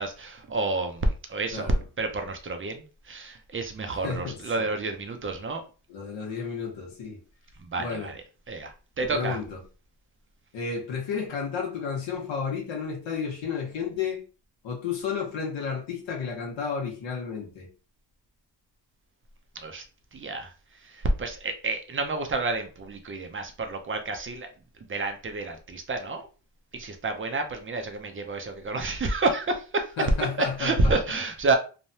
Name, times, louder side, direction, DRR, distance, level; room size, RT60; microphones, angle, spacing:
voice 1, 0.0-5.6 7.6-9.4 19.6-19.8 20.1-20.5 20.8-24.5 24.8-26.3 26.7-29.9 30.4-31.5, right 2 dB, 30° right, 0.4 m, -29 dB
voice 2, 4.0-4.7 5.9-7.2 7.8-8.1 9.0-9.6 10.5-14.2 14.6-17.7 30.0-31.0, left 6 dB, 85° left, 1.0 m, -32 dB
3.2 x 2.1 x 2.6 m
wide cardioid pair, 140°, 44 cm